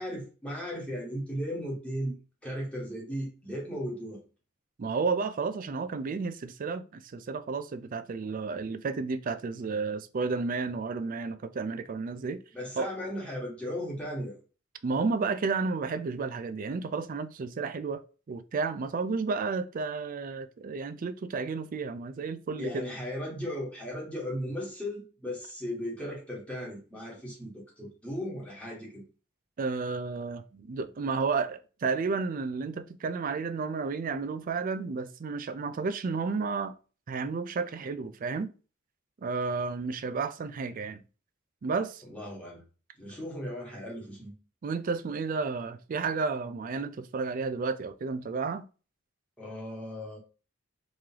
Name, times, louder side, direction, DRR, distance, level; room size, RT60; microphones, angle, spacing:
voice 1, 0.0-2.1 2.4-4.2 12.5-14.4 22.6-29.1 42.0-42.6 42.9-44.3 49.4-50.2, equal, 5° left, 1.5 m, -36 dB
voice 2, 4.8-12.4 12.8-12.9 14.8-18.0 18.3-22.8 29.6-36.7 37.1-38.5 39.2-41.0 41.6-42.0 44.6-48.7, right 4 dB, 40° right, 0.4 m, -32 dB
3.7 x 3.2 x 2.8 m
head